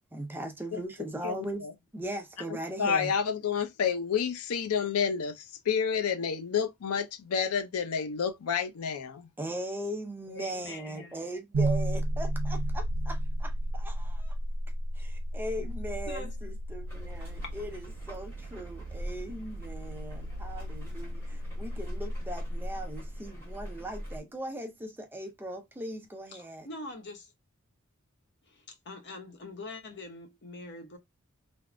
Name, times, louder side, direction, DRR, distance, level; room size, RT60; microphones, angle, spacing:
voice 1, 0.1-1.6 1.9-3.1 9.4-14.4 15.0-26.7, right 1 dB, 10° right, 0.5 m, -39 dB
voice 2, 2.8-9.3, left 6 dB, 85° left, 0.5 m, -29 dB
voice 3, 10.3-11.2 15.6-15.8 16.1-16.4 17.2-17.5 26.3-27.3 28.4-31.0, left 2 dB, 55° left, 0.8 m, -44 dB
sound 1, 11.5-23.6, right 1 dB, 75° right, 0.4 m, -34 dB
sound 2, 16.9-24.2, equal, 10° left, 1.1 m, -45 dB
3.4 x 2.0 x 2.4 m
head